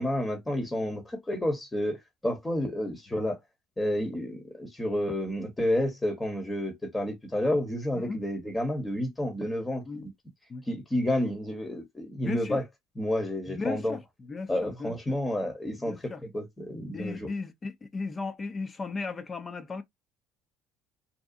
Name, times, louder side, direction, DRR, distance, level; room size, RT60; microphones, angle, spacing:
voice 1, 0.0-3.4 3.8-10.1 10.7-12.6 13.0-14.0 14.5-17.3, left 1 dB, 15° left, 1.0 m, -30 dB
voice 2, 12.2-12.6 13.5-14.9 15.8-16.2 16.9-19.8, left 4 dB, 30° left, 0.6 m, -35 dB
2.7 x 2.3 x 2.5 m
supercardioid pair, 85°, 0 cm